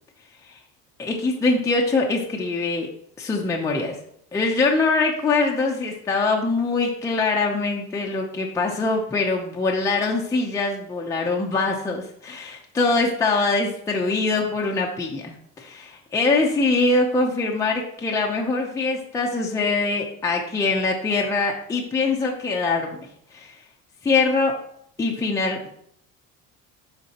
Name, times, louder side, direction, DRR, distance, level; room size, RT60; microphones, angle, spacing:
voice 1, 1.0-2.9 3.2-4.0 4.3-23.6 24.0-24.5 25.0-25.7, left 3 dB, 10° left, -1 dB, 0.5 m, -23 dB
11.5 x 4.0 x 2.8 m, 0.70 s
cardioid pair, 175°, 32 cm